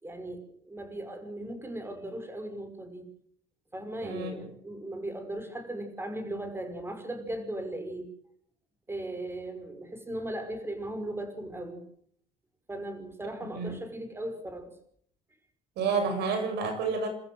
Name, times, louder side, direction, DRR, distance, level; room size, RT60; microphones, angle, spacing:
voice 1, 0.0-3.1 3.7-8.1 8.9-11.8 12.7-14.7, right 1 dB, 15° right, 8 dB, 5.8 m, -37 dB
voice 2, 4.0-4.5 13.5-13.8 15.8-17.1, right 4 dB, 75° right, 6 dB, 7.9 m, -30 dB
28.0 x 14.0 x 8.1 m, 0.66 s
cardioid pair, 110°, 17 cm